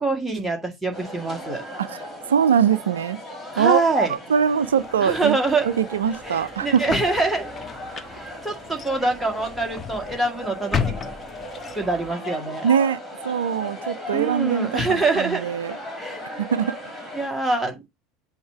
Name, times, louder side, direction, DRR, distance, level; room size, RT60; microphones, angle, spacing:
voice 1, 0.0-1.6 3.5-4.1 5.0-5.7 6.2-7.5 8.1-11.0 11.8-12.7 14.1-15.4 16.0-16.2 17.1-17.8, right 3 dB, 5° right, 1.9 m, -25 dB
sound 1, 0.9-17.3, left 1 dB, 10° left, 2.8 m, -37 dB
voice 2, 1.8-3.2 3.6-5.4 5.7-6.8 12.6-13.0 13.2-15.8 16.4-16.8, right 8 dB, 70° right, 0.4 m, -22 dB
sound 2, 4.6-12.1, left 6 dB, 25° left, 0.7 m, -34 dB
7.8 x 2.9 x 4.5 m
figure-of-eight pair, 75°, 0 cm